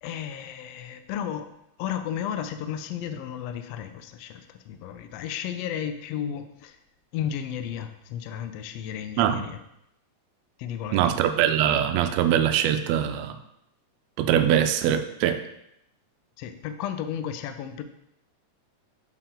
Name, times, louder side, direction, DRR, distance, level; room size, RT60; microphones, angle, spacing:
voice 1, 0.0-1.5 1.8-6.8 7.1-9.6 10.6-11.1 16.4-17.8, left 9 dB, 90° left, 8 dB, 1.4 m, -33 dB
voice 2, 10.9-13.4 14.2-15.4, right 10 dB, 80° right, 8 dB, 1.6 m, -22 dB
7.2 x 4.6 x 3.7 m, 0.80 s
omnidirectional pair, 3.4 m